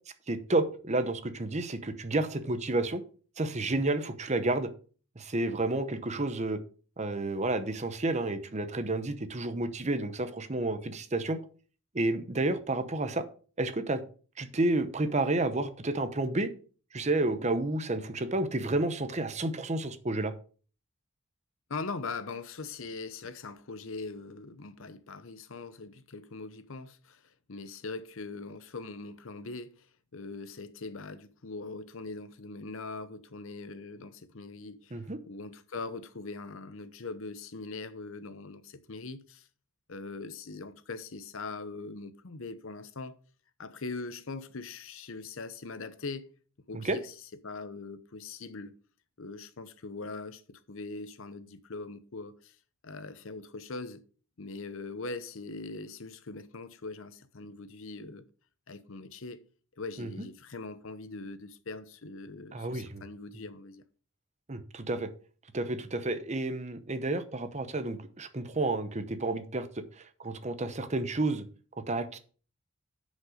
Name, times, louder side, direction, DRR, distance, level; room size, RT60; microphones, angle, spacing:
voice 1, 0.3-3.0 3.4-4.7 5.2-6.6 7.0-11.4 11.9-13.2 13.6-14.0 14.4-16.5 16.9-20.3 34.9-35.2 46.7-47.0 60.0-60.3 62.5-63.0 64.5-65.1 65.5-71.5 71.9-72.2, right 2 dB, 30° right, 0.8 m, -30 dB
voice 2, 21.7-29.9 30.1-39.5 39.9-43.2 43.6-46.3 46.7-47.1 47.4-48.7 49.2-52.6 52.8-54.0 54.4-58.2 58.7-59.4 59.8-63.8, left 3 dB, 65° left, 0.8 m, -41 dB
10.0 x 5.3 x 5.0 m
head